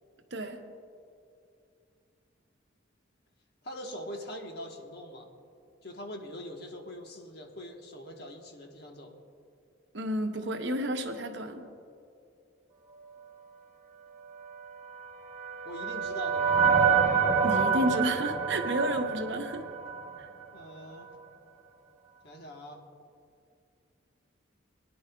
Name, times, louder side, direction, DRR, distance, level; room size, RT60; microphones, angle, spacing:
voice 1, 3.6-5.3 5.8-9.2 15.6-16.6 20.5-21.1 22.2-22.8, left 1 dB, 55° left, 2 dB, 1.2 m, -42 dB
voice 2, 9.9-11.6 17.4-19.6, right 1 dB, 65° right, 5 dB, 0.8 m, -31 dB
sound 1, 14.9-20.2, right 6 dB, 35° right, 1.1 m, -27 dB
21.0 x 10.0 x 2.3 m, 2.5 s
head